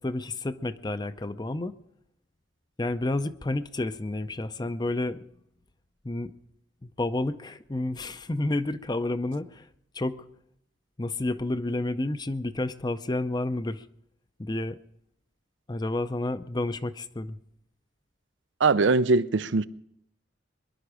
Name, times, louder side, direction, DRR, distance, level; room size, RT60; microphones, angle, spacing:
voice 1, 0.0-1.8 2.8-5.2 6.0-6.3 6.8-9.7 9.9-10.2 11.0-13.9 14.4-14.8 15.7-17.4, left 2 dB, 20° left, 0.5 m, -30 dB
voice 2, 18.6-19.6, right 3 dB, 80° right, 0.6 m, -21 dB
23.0 x 11.5 x 4.9 m
head